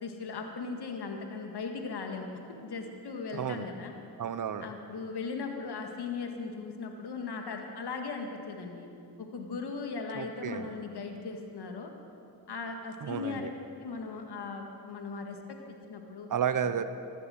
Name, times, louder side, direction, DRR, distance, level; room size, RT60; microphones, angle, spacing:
voice 1, 0.0-3.9 4.6-8.9 9.2-11.9 12.5-13.5 13.8-16.3, left 4 dB, 70° left, 4 dB, 1.8 m, -38 dB
voice 2, 3.3-3.7 4.2-4.7 10.1-10.7 13.0-13.5 16.3-16.8, right 8 dB, 50° right, 12 dB, 0.9 m, -32 dB
14.5 x 11.5 x 7.8 m, 2.6 s
cardioid pair, 60°, 41 cm